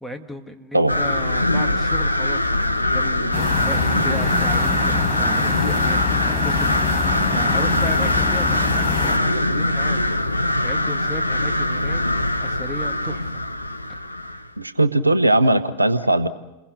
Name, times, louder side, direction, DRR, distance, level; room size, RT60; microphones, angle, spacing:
voice 1, 0.0-10.3 10.6-12.0 12.3-13.4 13.9-14.4, left 1 dB, ahead, 7 dB, 1.9 m, -36 dB
sound 1, 0.9-14.5, left 1 dB, 85° left, 0.9 m, -22 dB
sound 2, 3.3-9.2, left 5 dB, 30° left, 4.6 m, -25 dB
voice 2, 14.6-16.3, right 2 dB, 85° right, 14 dB, 0.9 m, -18 dB
29.0 x 22.0 x 6.5 m, 1.0 s
figure-of-eight pair, 90°, 0 cm